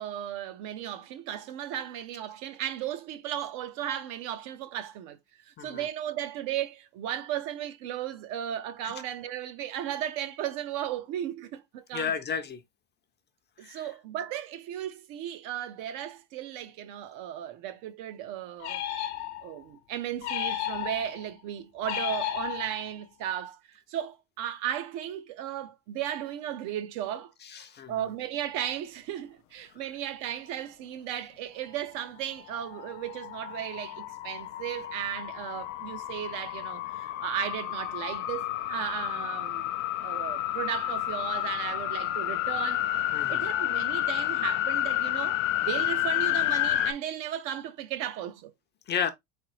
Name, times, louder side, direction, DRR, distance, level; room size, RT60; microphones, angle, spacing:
voice 1, 0.0-5.2 5.4-12.1 13.6-18.8 19.4-27.3 27.9-39.7 40.0-42.8 43.3-48.5, right 11 dB, 60° right, 0.8 m, -35 dB
voice 2, 11.9-12.6 13.6-13.9 27.4-27.9 43.1-43.5 48.9-49.1, left 7 dB, 30° left, 0.6 m, -32 dB
sound 1, 18.6-19.6 20.2-21.3 21.8-23.0, left 11 dB, 70° left, 0.9 m, -33 dB
sound 2, 32.5-46.9, left 14 dB, 85° left, 0.5 m, -30 dB
3.8 x 3.3 x 2.9 m
supercardioid pair, 100°, 37 cm